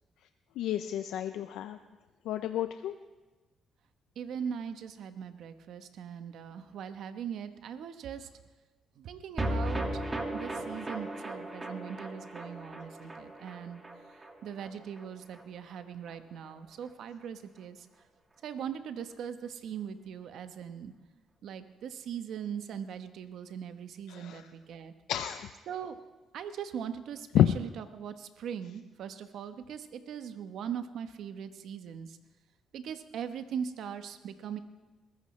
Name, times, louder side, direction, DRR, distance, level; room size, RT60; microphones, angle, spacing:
voice 1, 0.6-1.8 2.3-2.9 24.1-24.4 25.1-25.5 27.3-27.5, left 12 dB, 85° left, 9 dB, 0.5 m, -29 dB
voice 2, 4.2-8.3 9.0-10.0 10.3-13.8 14.4-17.9 18.4-20.9 21.4-24.9 25.7-26.0 26.3-32.2 32.7-34.6, right 8 dB, 75° right, 9 dB, 1.0 m, -40 dB
sound 1, 9.4-15.8 16.1-16.2 16.4-16.5, right 1 dB, 25° right, 2.0 m, -37 dB
22.0 x 14.5 x 3.2 m, 1.2 s
cardioid pair, 90°, 0 cm